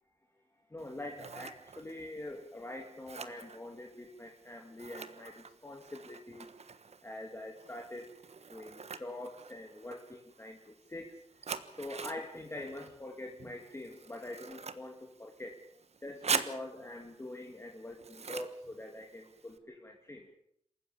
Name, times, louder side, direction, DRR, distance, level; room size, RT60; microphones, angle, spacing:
voice 1, 0.7-6.5 7.0-8.1 8.5-11.2 11.8-15.6 16.0-20.3, left 1 dB, 20° left, 2 dB, 2.5 m, -44 dB
Scissors, 0.8-19.6, right 5 dB, 60° right, 1.3 m, -44 dB
27.5 x 15.0 x 7.1 m, 0.71 s
wide cardioid pair, 100°, 12 cm